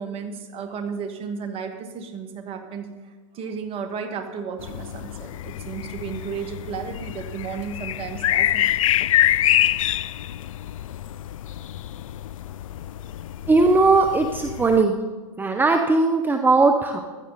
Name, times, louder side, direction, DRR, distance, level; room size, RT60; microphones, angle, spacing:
voice 1, 0.0-2.9 3.3-8.7, right 6 dB, 35° right, 5 dB, 2.1 m, -33 dB
sound 1, 4.6-14.8, left 13 dB, 75° left, 0.5 m, -26 dB
voice 2, 13.5-14.9 15.4-17.0, right 3 dB, 10° right, 5 dB, 1.0 m, -18 dB
16.0 x 12.5 x 4.2 m, 1.4 s
hypercardioid pair, 120°, 17 cm